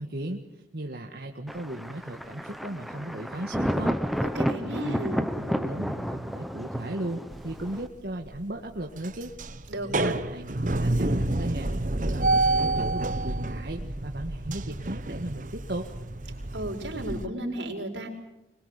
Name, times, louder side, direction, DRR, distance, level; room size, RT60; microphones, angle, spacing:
voice 1, 0.0-4.0 4.6-9.3 9.9-11.8 12.0-15.9, right 1 dB, 60° right, 1 dB, 1.7 m, -36 dB
Thunder, 1.5-7.9, equal, ahead, 1.0 m, -31 dB
voice 2, 4.2-5.2 9.7-10.1 16.5-18.1, right 1 dB, 85° right, 1 dB, 5.2 m, -33 dB
sound 1, 7.3-7.8 8.3-8.4 8.8-17.2, right 2 dB, 45° right, 1.1 m, -29 dB
24.0 x 21.0 x 8.3 m, 0.93 s
head